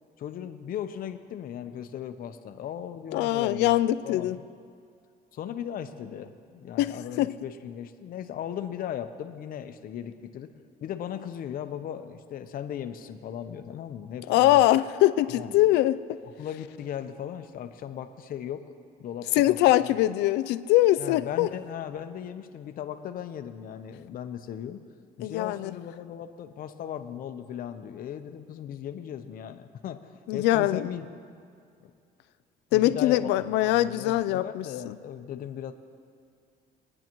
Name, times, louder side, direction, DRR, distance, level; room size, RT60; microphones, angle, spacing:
voice 1, 0.2-3.8 4.0-4.4 5.3-10.5 10.8-14.6 15.3-15.6 16.2-18.6 19.0-20.0 21.0-24.8 25.2-30.0 30.3-31.1 32.7-35.7, left 9 dB, 60° left, 8 dB, 0.8 m, -37 dB
voice 2, 3.1-4.4 6.8-7.3 14.3-16.0 19.4-21.5 25.2-25.7 30.3-30.9 32.7-34.9, left 15 dB, 90° left, 13 dB, 0.4 m, -23 dB
22.5 x 9.8 x 3.1 m, 2.4 s
cardioid pair, 110°, 17 cm